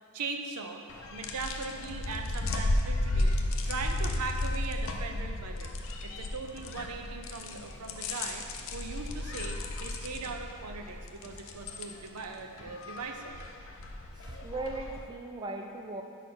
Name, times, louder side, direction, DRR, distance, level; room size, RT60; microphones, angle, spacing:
voice 1, 0.1-0.8 1.1-3.4 3.6-5.7 6.0-13.4, right 4 dB, 85° right, 4 dB, 0.5 m, -39 dB
sound 1, 0.9-15.0, left 1 dB, 60° left, 0.5 m, -34 dB
voice 2, 14.1-16.0, right 2 dB, 20° right, 2 dB, 0.3 m, -38 dB
4.9 x 4.0 x 5.8 m, 2.4 s
head